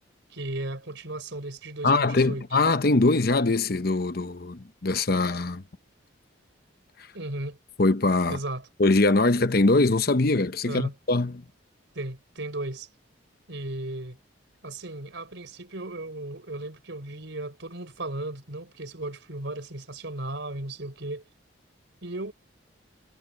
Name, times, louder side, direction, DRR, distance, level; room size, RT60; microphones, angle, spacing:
voice 1, 0.3-2.5 7.1-7.6 8.3-8.7 10.6-10.9 11.9-12.9 13.5-14.2 14.6-21.2 22.0-22.3, right 1 dB, 65° right, 4.3 m, -35 dB
voice 2, 1.8-5.6 7.8-8.4 8.8-11.4, left 2 dB, 50° left, 0.8 m, -22 dB
head